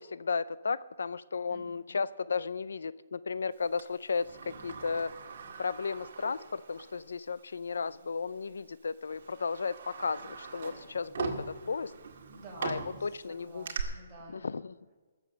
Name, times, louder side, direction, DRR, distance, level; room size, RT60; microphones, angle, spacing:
voice 1, 0.0-5.1 5.6-11.9 12.6-13.7 14.4-14.7, left 5 dB, 85° left, 18 dB, 0.4 m, -34 dB
voice 2, 1.5-1.9 12.3-14.5, right 2 dB, 20° right, -4 dB, 4.4 m, -51 dB
Sliding door, 3.8-7.0 7.4-7.5 8.4-8.6 9.1-13.8, right 5 dB, 60° right, 1.8 m, -41 dB
18.5 x 7.3 x 6.5 m, 1.4 s
hypercardioid pair, 155°, 0 cm